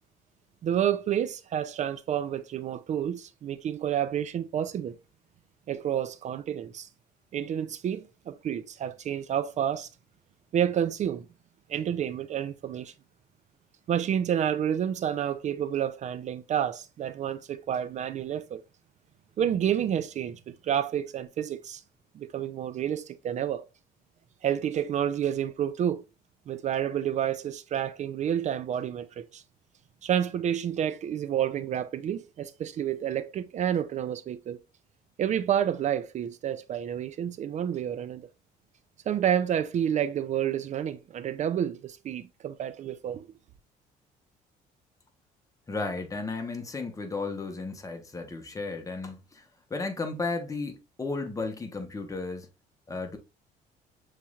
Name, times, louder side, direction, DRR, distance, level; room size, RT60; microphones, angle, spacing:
voice 1, 0.6-4.9 5.7-6.9 7.3-9.9 10.5-11.3 11.7-12.9 13.9-18.6 19.4-21.8 22.1-23.6 24.4-26.0 26.5-29.4 30.0-34.6 35.2-38.3 39.1-43.3, right 9 dB, 45° right, 0.4 m, -29 dB
voice 2, 45.7-49.4 49.7-52.5 52.9-53.2, left 3 dB, 20° left, 1.0 m, -34 dB
6.8 x 3.2 x 2.4 m
cardioid pair, 110°, 17 cm